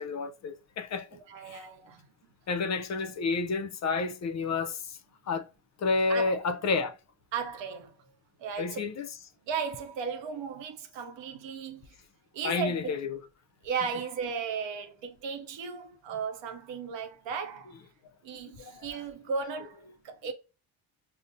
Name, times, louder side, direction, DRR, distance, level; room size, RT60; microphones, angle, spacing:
voice 1, 0.0-1.1 1.4-1.6 2.5-5.0 5.3-5.5 5.8-7.0 8.6-9.1 12.4-13.2 18.6-19.0, left 4 dB, 40° left, 0.4 m, -30 dB
voice 2, 1.1-2.1 6.1-6.4 7.3-7.9 8.4-8.8 9.5-11.9 12.3-13.0 13.6-17.7 18.2-20.3, right 6 dB, 75° right, 0.7 m, -35 dB
5.3 x 2.0 x 2.5 m
supercardioid pair, 65°, 45 cm